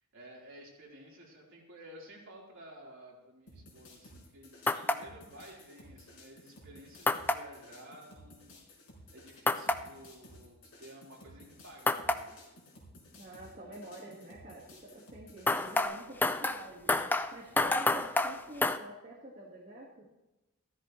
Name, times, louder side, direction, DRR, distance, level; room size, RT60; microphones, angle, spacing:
voice 1, 0.0-12.4, right 1 dB, 55° right, -4 dB, 4.2 m, -53 dB
sound 1, 3.5-15.8, left 1 dB, 60° left, 5.1 m, -55 dB
sound 2, 4.7-5.0 7.1-7.4 9.5-9.8 11.9-12.2 15.5-18.8, left 2 dB, 10° left, 0.4 m, -28 dB
voice 2, 13.2-20.1, right 1 dB, 35° right, -5 dB, 1.8 m, -47 dB
15.5 x 14.0 x 3.2 m, 1.0 s
head